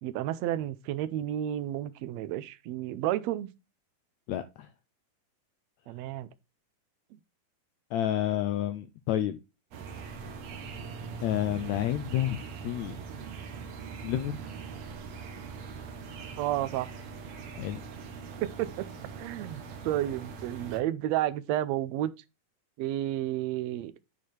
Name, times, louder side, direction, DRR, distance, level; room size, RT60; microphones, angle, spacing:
voice 1, 0.0-3.5 5.9-6.3 16.4-16.9 18.4-18.9 19.2-22.1 22.8-23.9, right 13 dB, 85° right, 1.5 m, -31 dB
voice 2, 4.3-4.7 7.9-9.4 11.2-13.0 14.0-14.4 17.5-17.8, left 11 dB, 80° left, 1.6 m, -30 dB
sound 1, 9.7-20.8, right 5 dB, 60° right, 2.3 m, -42 dB
10.0 x 4.7 x 4.3 m
omnidirectional pair, 3.8 m